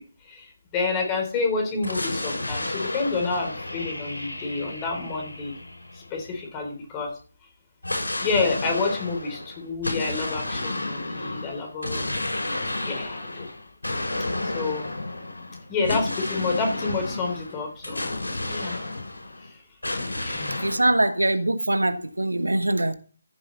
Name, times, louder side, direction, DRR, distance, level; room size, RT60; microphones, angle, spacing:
voice 1, 0.3-5.5 5.9-7.1 8.2-12.6 12.8-13.5 14.4-14.9 15.7-18.1 18.4-18.8 19.4-19.6 20.2-20.6, left 4 dB, 20° left, 3.8 m, -29 dB
sound 1, 1.8-6.5 7.8-19.5 19.8-20.9, left 2 dB, 80° left, 5.7 m, -31 dB
voice 2, 20.6-22.9, right 1 dB, 80° right, 1.4 m, -23 dB
14.5 x 7.8 x 4.1 m
figure-of-eight pair, 150°, 0 cm